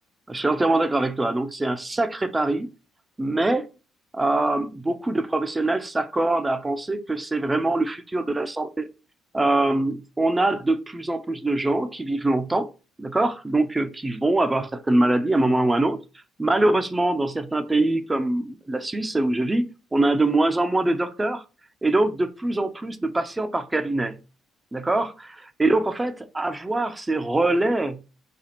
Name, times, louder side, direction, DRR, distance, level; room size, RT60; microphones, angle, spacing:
voice 1, 0.3-2.7 3.2-3.7 4.1-8.9 9.3-12.7 13.0-16.0 16.4-21.4 21.8-24.2 24.7-28.0, right 2 dB, 20° right, 0.5 m, -23 dB
4.1 x 2.4 x 2.9 m
supercardioid pair, 65°, 0 cm